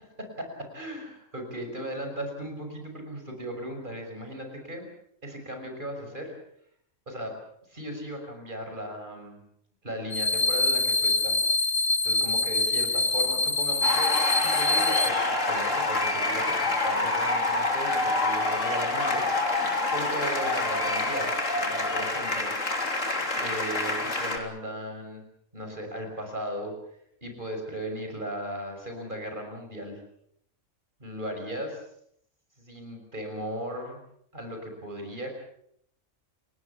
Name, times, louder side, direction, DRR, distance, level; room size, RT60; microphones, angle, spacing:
voice 1, 0.2-4.9 5.2-6.3 7.1-7.3 7.7-9.4 9.8-11.7 12.0-19.3 19.5-21.4 21.7-22.5 23.4-25.2 25.5-26.7 27.2-30.0 31.0-31.9 32.6-34.0 34.3-35.3, equal, 40° right, 4 dB, 6.3 m, -37 dB
sound 1, 10.1-15.1, left 2 dB, 40° left, 1.3 m, -25 dB
sound 2, 13.8-24.4, left 2 dB, 80° left, 3.7 m, -27 dB
29.5 x 18.0 x 7.2 m, 0.69 s
omnidirectional pair, 1.3 m